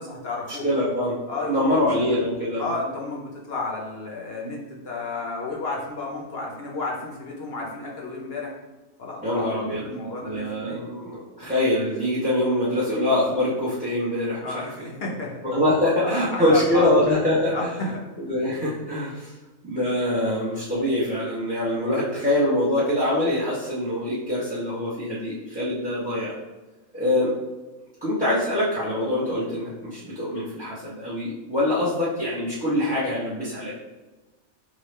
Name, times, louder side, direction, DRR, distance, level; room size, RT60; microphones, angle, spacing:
voice 1, 0.0-0.6 1.3-1.9 2.6-8.5 9.0-10.8 14.4-15.4 16.0-17.2 17.5-18.0, left 2 dB, 55° left, -2 dB, 0.8 m, -32 dB
voice 2, 0.6-1.2 1.5-2.7 9.2-9.9 10.2-14.7 15.4-17.7 18.2-19.3 19.6-26.3 26.9-27.3 28.0-33.7, left 1 dB, 5° right, -10 dB, 0.7 m, -24 dB
4.9 x 2.3 x 3.2 m, 1.2 s
omnidirectional pair, 1.5 m